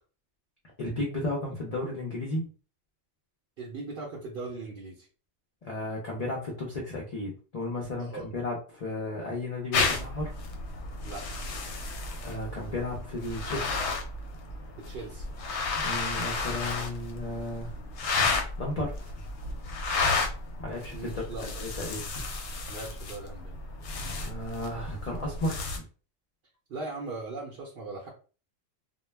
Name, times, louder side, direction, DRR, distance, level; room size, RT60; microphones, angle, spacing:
voice 1, 0.8-2.5 5.6-10.3 12.2-13.8 15.8-17.7 18.6-19.1 20.6-22.1 24.2-25.8, left 2 dB, 50° left, -1 dB, 0.5 m, -34 dB
voice 2, 3.6-5.1 8.0-8.3 11.0-11.2 14.8-15.3 20.9-21.5 22.7-23.6 26.7-28.1, right 3 dB, 55° right, -3 dB, 0.7 m, -39 dB
sound 1, 9.7-25.8, left 3 dB, 65° left, 0.8 m, -33 dB
2.2 x 2.1 x 3.2 m, 0.36 s
omnidirectional pair, 1.3 m